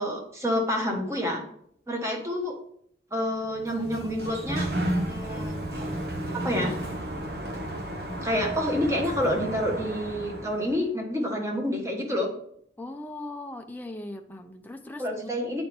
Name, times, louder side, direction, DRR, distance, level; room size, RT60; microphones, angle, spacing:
voice 1, 0.0-1.4 1.9-2.5 3.1-4.7 5.1-5.9 6.3-6.7 8.2-12.3 15.0-15.6, equal, 15° right, 1 dB, 1.3 m, -28 dB
Sliding door, 3.5-10.9, right 1 dB, 60° right, 1.2 m, -32 dB
voice 2, 12.8-15.3, left 2 dB, 10° left, 4 dB, 0.5 m, -39 dB
8.8 x 4.3 x 4.3 m, 0.68 s
head